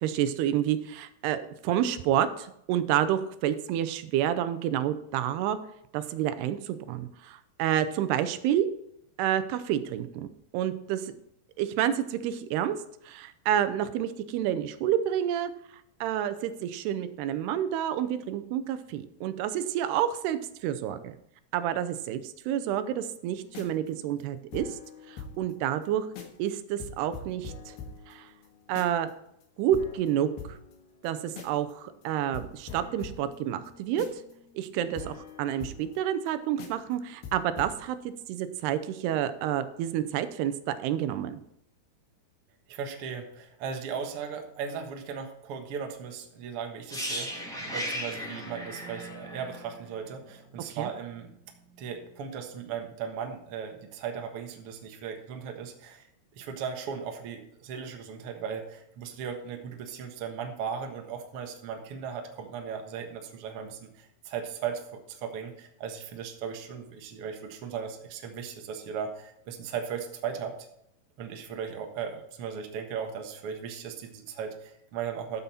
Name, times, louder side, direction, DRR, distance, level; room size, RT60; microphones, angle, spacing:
voice 1, 0.0-5.6 5.9-8.7 9.2-10.3 10.5-11.1 11.6-12.8 13.1-15.5 16.0-21.1 21.5-24.7 25.1-26.1 26.4-27.8 28.1-28.3 28.7-29.1 29.6-30.6 31.0-34.1 34.6-38.0 38.3-41.4 50.7-50.9, right 10 dB, 85° right, 11 dB, 2.8 m, -29 dB
sound 1, 23.4-25.5 25.8-25.9 26.2-26.5 26.8-29.1 29.4-29.5 29.7-31.7 32.0-32.1 32.3-36.3 36.6-36.9 37.2-37.8, left 4 dB, 75° left, 3.5 m, -44 dB
voice 2, 42.7-51.3 51.8-56.1 56.3-70.5 71.2-75.4, right 7 dB, 60° right, 4 dB, 1.5 m, -37 dB
sound 2, 46.9-50.8 51.0-51.2, equal, ahead, 1.9 m, -36 dB
13.5 x 7.1 x 4.2 m, 0.76 s
omnidirectional pair, 4.6 m